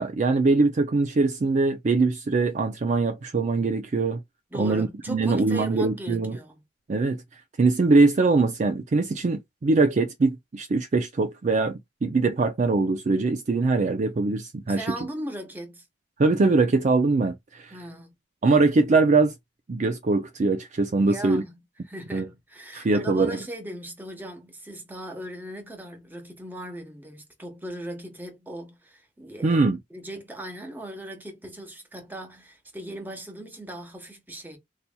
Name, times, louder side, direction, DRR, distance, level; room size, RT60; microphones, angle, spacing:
voice 1, 0.0-4.2 4.5-6.4 6.9-7.2 7.6-14.9 16.2-17.7 18.4-19.3 19.7-21.4 22.1-22.3 22.7-23.4 29.4-29.8, right 3 dB, 40° right, 0.4 m, -22 dB
voice 2, 4.5-6.6 14.7-15.8 17.7-18.1 21.0-21.6 21.8-29.6 29.9-34.6, right 1 dB, 10° right, 1.1 m, -38 dB
4.0 x 2.9 x 2.2 m
head